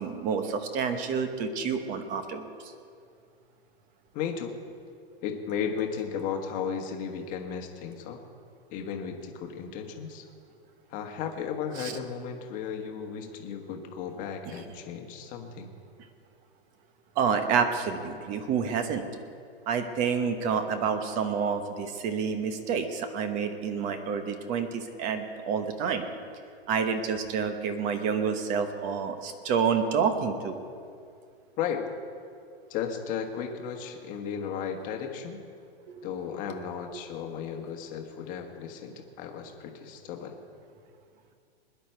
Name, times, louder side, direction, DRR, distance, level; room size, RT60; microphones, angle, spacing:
voice 1, 0.0-2.4 11.8-12.0 17.2-19.1 19.7-26.0 26.7-30.6, right 6 dB, 25° right, 8 dB, 1.0 m, -28 dB
voice 2, 4.1-4.6 5.2-8.2 8.7-10.3 10.9-15.7 31.6-31.9 32.7-35.4 36.0-40.3, left 7 dB, 25° left, 4 dB, 1.4 m, -35 dB
20.5 x 10.5 x 4.5 m, 2.3 s
hypercardioid pair, 145°, 32 cm